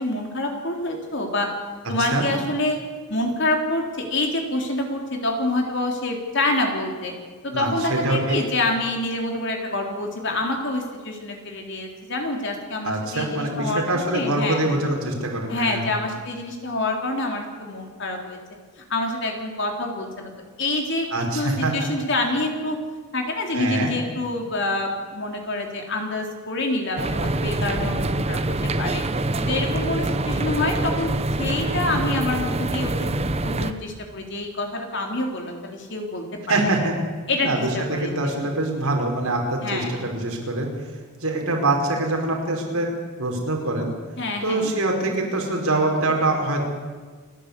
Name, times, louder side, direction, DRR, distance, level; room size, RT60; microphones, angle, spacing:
voice 1, 0.0-1.5 1.9-2.8 3.1-7.1 7.4-14.7 15.5-18.4 18.9-20.3 20.6-21.1 21.3-22.8 23.1-29.0 29.4-31.1 31.4-33.1 33.4-36.6 37.3-38.3 39.6-40.1 44.2-44.7, left 2 dB, 55° left, 2 dB, 3.7 m, -27 dB
voice 2, 7.5-8.4 12.8-15.8 21.1-21.9 23.5-23.9 36.5-36.9 37.4-40.7 41.2-42.9 43.2-43.9 44.4-46.6, right 2 dB, 80° right, 1 dB, 5.0 m, -24 dB
sound 1, 27.0-33.7, right 2 dB, 30° right, 0.9 m, -25 dB
29.0 x 11.5 x 8.4 m, 1.5 s
head